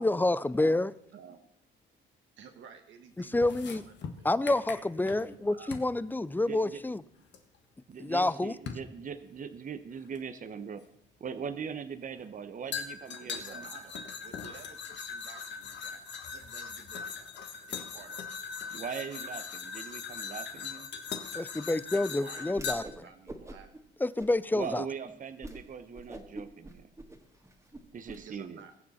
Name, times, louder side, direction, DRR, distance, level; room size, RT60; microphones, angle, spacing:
voice 1, 0.0-0.9 3.3-3.8 4.2-7.0 8.0-8.5 21.3-22.8 24.0-24.8, left 2 dB, 10° left, 0.5 m, -28 dB
voice 2, 1.1-1.4 2.4-4.6 5.1-5.8 13.2-17.3 17.7-18.2 22.2-23.7 28.1-28.7, right 7 dB, 70° right, 1.3 m, -53 dB
sound 1, 3.3-5.4 5.7-5.9 7.3-7.4 8.7-8.9 10.2-10.3 12.7-22.7, left 6 dB, 60° left, 1.5 m, -40 dB
voice 3, 6.4-6.8 7.9-10.8 11.2-13.6 18.7-20.9 24.5-26.9 27.9-28.6, right 6 dB, 40° right, 0.9 m, -40 dB
Whoosh swoosh swish, 22.5-23.0 23.3-23.8 24.2-24.7 25.0-25.1 25.4-25.6 25.9-28.2, right 2 dB, 15° right, 1.8 m, -45 dB
21.0 x 7.3 x 4.2 m
cardioid pair, 90°, 20 cm